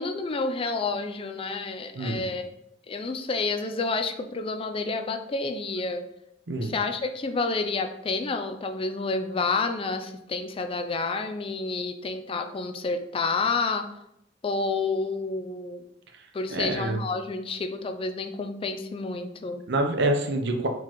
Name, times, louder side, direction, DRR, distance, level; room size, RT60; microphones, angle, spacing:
voice 1, 0.0-2.5 2.9-6.1 6.6-13.9 14.4-15.8 16.3-19.6, left 3 dB, 30° left, 7 dB, 0.4 m, -29 dB
voice 2, 16.5-17.0 19.7-20.7, right 2 dB, 65° right, 4 dB, 0.7 m, -26 dB
4.5 x 3.9 x 3.0 m, 0.79 s
head